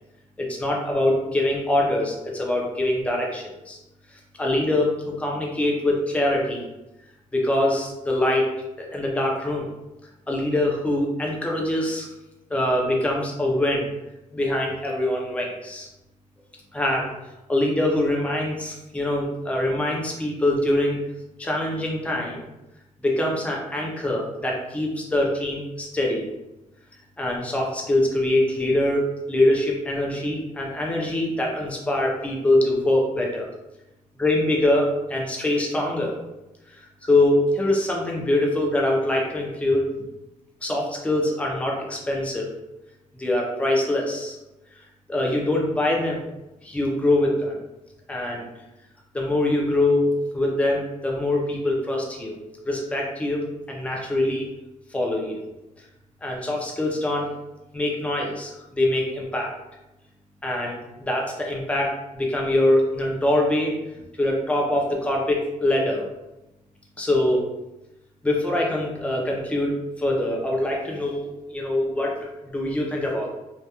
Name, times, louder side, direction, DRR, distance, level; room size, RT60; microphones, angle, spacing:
voice 1, 0.4-3.8 4.4-6.6 7.3-8.5 8.8-9.7 10.3-12.1 12.5-13.9 14.3-15.9 16.7-17.1 17.5-21.0 21.4-22.4 23.0-26.2 27.2-33.5 34.2-36.1 36.8-39.9 40.6-42.5 43.2-44.4 45.1-46.2 46.6-47.6 48.1-48.5 49.1-50.1 50.3-52.4 52.7-54.5 54.9-55.4 56.2-57.3 57.7-59.5 60.4-63.8 64.2-66.1 67.0-67.4 68.2-73.3, left 1 dB, 10° left, -1 dB, 0.5 m, -24 dB
2.8 x 2.3 x 2.2 m, 0.97 s
cardioid pair, 100°, 14 cm